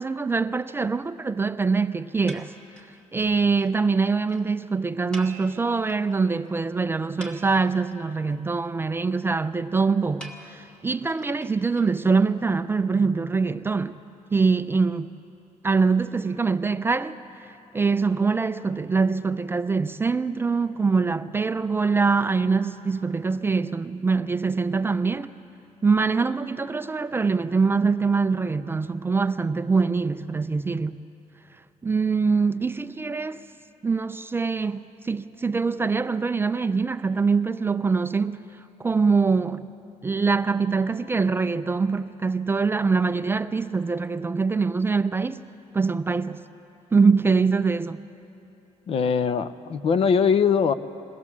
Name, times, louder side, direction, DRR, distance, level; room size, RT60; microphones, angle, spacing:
voice 1, 0.0-2.5 2.8-2.9 3.1-14.0 14.3-15.1 15.6-25.3 25.8-31.0 31.8-33.5 33.8-38.4 38.8-39.7 40.0-45.4 45.7-46.4 46.9-48.0, right 4 dB, 20° right, 0.4 m, -24 dB
sound 1, 2.3-3.0 3.3-3.4 3.6-3.7 4.0-4.1 4.3-4.4 5.1-6.1 6.5-6.6 7.0-7.9 10.2-12.2, right 2 dB, 10° left, 1.9 m, -45 dB
voice 2, 48.9-50.7, left 6 dB, 50° left, 0.6 m, -21 dB
22.0 x 17.0 x 7.2 m
cardioid pair, 135°, 13 cm